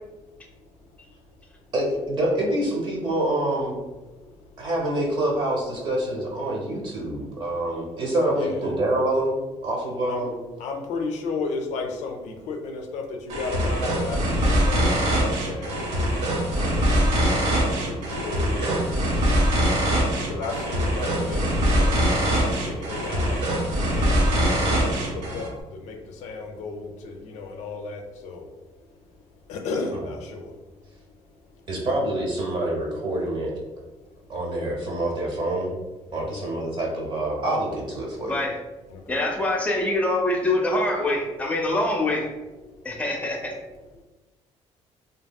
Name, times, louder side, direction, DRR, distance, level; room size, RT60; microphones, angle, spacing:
voice 1, 1.7-3.8 4.6-10.4 16.6-16.9 17.2-17.3 18.6-18.9 29.9-30.1 31.7-33.6 34.3-35.7 36.1-38.4, right 1 dB, 40° right, -2 dB, 0.7 m, -26 dB
voice 2, 10.6-15.7 17.7-18.7 20.3-23.6 23.9-24.5 24.8-25.5 25.8-28.5 29.5-30.5 38.9-39.2, left 4 dB, 90° left, 3 dB, 0.5 m, -34 dB
sound 1, 13.3-25.5, equal, 90° right, 0.7 m, -23 dB
voice 3, 38.2-38.6 39.1-42.3 42.8-43.5, left 1 dB, 10° left, 1 dB, 0.4 m, -24 dB
2.8 x 2.7 x 2.2 m, 1.2 s
cardioid pair, 145°, 12 cm